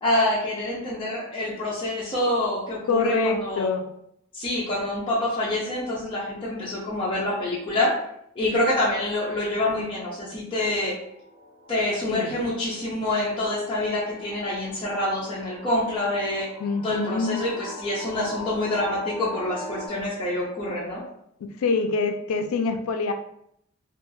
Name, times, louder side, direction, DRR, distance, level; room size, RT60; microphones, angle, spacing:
voice 1, 0.0-3.7 4.3-7.9 8.4-11.0 11.7-16.5 16.8-21.0, left 1 dB, 25° left, -7 dB, 0.5 m, -26 dB
voice 2, 2.9-3.9 12.1-12.3 16.6-17.4 21.6-23.1, left 4 dB, 80° left, 6 dB, 0.4 m, -25 dB
sound 1, 10.9-19.9, left 1 dB, 15° right, 1.0 m, -42 dB
2.7 x 2.3 x 2.5 m, 0.72 s
head